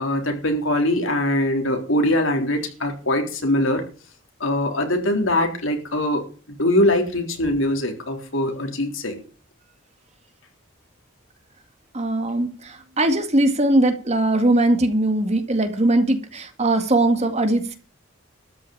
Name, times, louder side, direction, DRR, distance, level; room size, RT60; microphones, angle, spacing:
voice 1, 0.0-3.8 4.4-6.2 6.5-9.2, left 1 dB, 85° left, 3 dB, 3.8 m, -22 dB
voice 2, 11.9-17.8, right 1 dB, 35° right, 7 dB, 2.0 m, -20 dB
13.0 x 6.4 x 8.7 m, 0.39 s
head